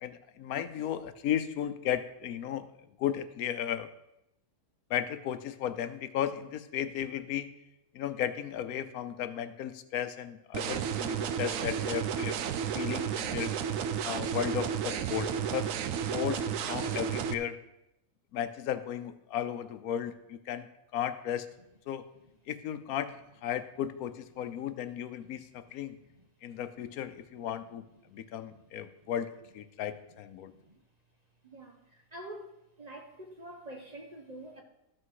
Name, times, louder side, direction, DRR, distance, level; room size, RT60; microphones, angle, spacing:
voice 1, 0.0-2.7 3.0-3.9 4.9-7.5 7.9-12.4 12.7-13.5 14.0-15.7 16.1-17.6 18.3-21.5 21.9-22.0 22.5-26.0 26.4-27.8 28.1-30.5, left 10 dB, 85° left, 1.2 m, -35 dB
sound 1, 10.5-17.3, right 8 dB, 70° right, 1.0 m, -32 dB
voice 2, 28.8-29.1 30.5-30.8 31.4-32.5 32.8-34.6, right 1 dB, 35° right, 1.0 m, -47 dB
13.5 x 6.2 x 4.7 m
omnidirectional pair, 1.5 m